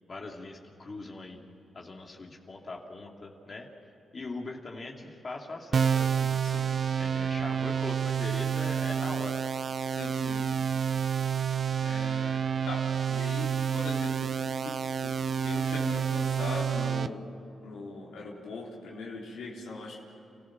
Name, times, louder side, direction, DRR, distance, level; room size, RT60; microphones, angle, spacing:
voice 1, 0.1-1.4 1.7-3.7 4.1-6.4 7.0-9.4, left 3 dB, 40° left, 0 dB, 2.6 m, -41 dB
sound 1, 5.7-17.1, right 7 dB, 55° right, 0.6 m, -29 dB
voice 2, 9.9-10.4 11.8-14.3 14.6-15.2 15.4-17.3 17.6-20.0, left 3 dB, 85° left, -4 dB, 4.0 m, -40 dB
30.0 x 14.5 x 7.4 m, 2.9 s
cardioid pair, 75°, 0 cm